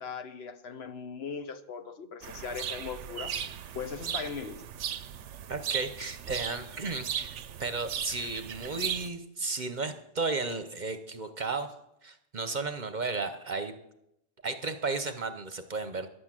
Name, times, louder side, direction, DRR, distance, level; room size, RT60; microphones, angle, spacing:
voice 1, 0.0-3.4 3.7-4.6, left 5 dB, 60° left, 10 dB, 1.0 m, -39 dB
sound 1, 2.2-9.1, right 9 dB, 80° right, 1.0 m, -37 dB
voice 2, 5.5-7.3 7.6-11.7 12.0-13.7 14.4-16.1, right 3 dB, 45° right, 9 dB, 0.9 m, -34 dB
11.0 x 8.4 x 7.5 m, 0.81 s
omnidirectional pair, 1.2 m